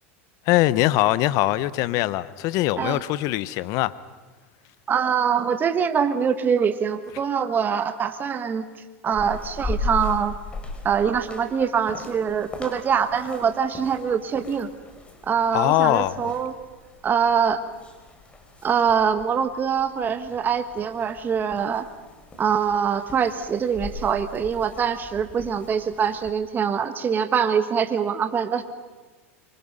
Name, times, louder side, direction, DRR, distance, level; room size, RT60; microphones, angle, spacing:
voice 1, 0.5-3.9 15.5-16.3, left 16 dB, 55° left, 1.0 m, -22 dB
voice 2, 4.9-8.6 9.0-10.4 10.8-14.7 15.3-16.6 17.0-17.6 18.6-21.8 22.4-28.6, right 7 dB, 25° right, 1.6 m, -24 dB
sound 1, 9.1-26.3, left 3 dB, 15° left, 4.0 m, -38 dB
25.5 x 24.5 x 5.6 m
supercardioid pair, 115°, 7 cm